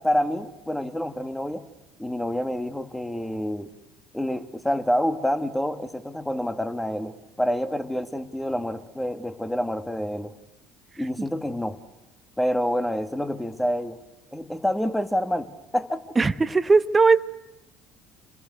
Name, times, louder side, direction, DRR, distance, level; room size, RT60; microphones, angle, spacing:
voice 1, 0.0-1.6 2.0-3.7 4.1-10.3 11.0-11.8 12.4-14.0 14.3-15.5 15.7-16.0, equal, 5° left, 10 dB, 2.0 m, -27 dB
voice 2, 16.2-17.2, right 4 dB, 25° right, 12 dB, 1.1 m, -18 dB
28.5 x 20.5 x 8.2 m, 1.0 s
hypercardioid pair, 65°, 0 cm